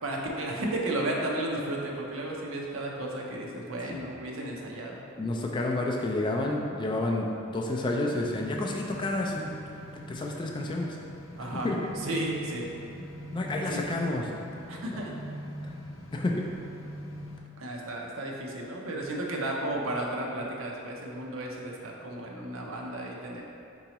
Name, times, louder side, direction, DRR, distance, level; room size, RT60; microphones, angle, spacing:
voice 1, 0.0-5.0 11.4-12.7 13.7-13.8 14.7-15.1 17.6-23.4, right 1 dB, 70° right, -1 dB, 0.6 m, -33 dB
voice 2, 5.2-9.6 10.1-11.0 11.4-11.8 13.3-14.2 14.9-15.1 16.1-16.4, left 2 dB, 20° left, 0 dB, 0.3 m, -30 dB
sound 1, 8.0-17.4, equal, 65° left, 0.6 m, -42 dB
4.5 x 3.9 x 2.9 m, 2.6 s
head